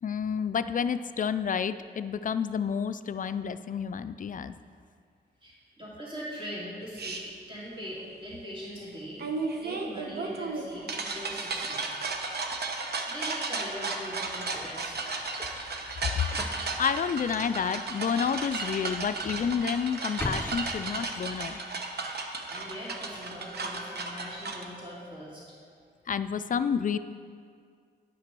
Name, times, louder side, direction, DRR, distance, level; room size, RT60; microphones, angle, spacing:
voice 1, 0.0-4.5 16.8-21.6 26.1-27.0, left 7 dB, 45° left, 12 dB, 0.4 m, -30 dB
voice 2, 5.4-11.9 13.1-15.2 22.1-25.6, equal, 30° right, -7 dB, 2.9 m, -41 dB
sound 1, 7.0-7.2 9.2-24.6, right 3 dB, 65° right, 1.0 m, -34 dB
sound 2, 14.1-21.6, left 2 dB, 10° left, 0.7 m, -43 dB
10.0 x 5.9 x 6.0 m, 2.2 s
cardioid pair, 80°, 18 cm